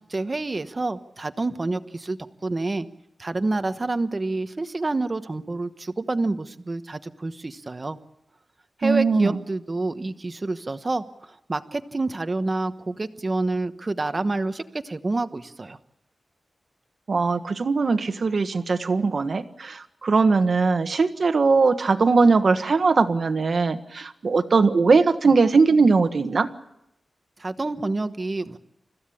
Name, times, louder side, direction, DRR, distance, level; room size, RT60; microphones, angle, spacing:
voice 1, 0.1-2.9 3.2-8.0 8.8-15.8 27.4-28.6, right 2 dB, 30° right, 10 dB, 1.1 m, -28 dB
voice 2, 8.8-9.4 17.1-26.5, right 4 dB, 50° right, 9 dB, 1.4 m, -20 dB
29.5 x 15.5 x 8.6 m, 0.84 s
wide cardioid pair, 155°, 0 cm